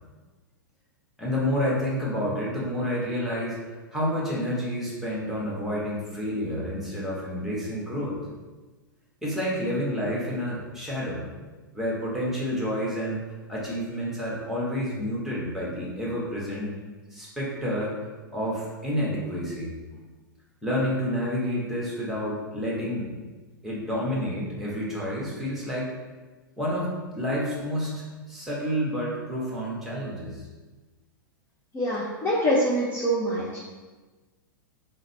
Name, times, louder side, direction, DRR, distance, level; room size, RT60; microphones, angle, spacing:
voice 1, 1.2-8.2 9.2-11.3 11.7-13.2 13.5-16.7 17.1-17.9 18.3-19.7 20.6-23.1 23.6-25.9 26.6-30.5, equal, 5° right, -6 dB, 1.2 m, -29 dB
voice 2, 31.7-33.6, equal, 20° left, -5 dB, 0.6 m, -25 dB
3.9 x 2.1 x 4.0 m, 1.3 s
figure-of-eight pair, 100°, 11 cm